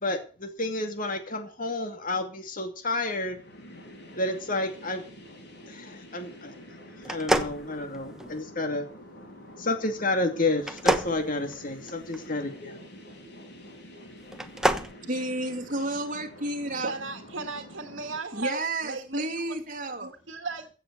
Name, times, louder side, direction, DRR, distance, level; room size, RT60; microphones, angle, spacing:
voice 1, 0.0-3.4 4.2-5.0 5.7-6.5 7.1-8.8 9.6-12.8, left 2 dB, 45° left, 2.4 m, -30 dB
sound 1, 3.2-18.2, equal, 60° left, 5.4 m, -47 dB
sound 2, 7.0-8.4 10.6-12.2 14.3-14.9, right 1 dB, 5° right, 1.0 m, -27 dB
voice 2, 15.1-16.9 18.3-20.1, right 2 dB, 45° right, 2.0 m, -31 dB
voice 3, 16.8-19.6 20.0-20.7, right 3 dB, 70° right, 1.8 m, -36 dB
16.0 x 7.9 x 6.9 m
head